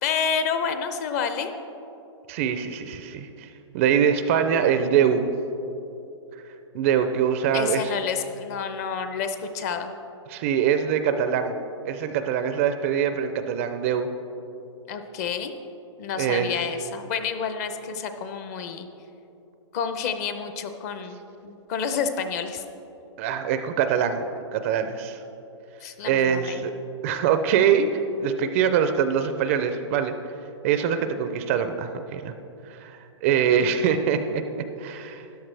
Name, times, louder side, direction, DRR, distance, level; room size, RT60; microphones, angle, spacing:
voice 1, 0.0-1.5 7.5-9.9 14.9-15.5 16.0-18.9 19.7-22.6 25.8-26.6, left 6 dB, 35° left, 8 dB, 0.6 m, -29 dB
voice 2, 2.3-5.3 6.7-7.8 10.3-11.5 11.8-14.1 16.2-16.6 23.2-24.3 24.5-25.2 26.0-26.7 27.0-30.1 30.6-32.3 32.7-34.4 34.8-35.2, right 8 dB, 25° right, 9 dB, 0.4 m, -23 dB
13.5 x 10.5 x 3.3 m, 2.9 s
hypercardioid pair, 155°, 16 cm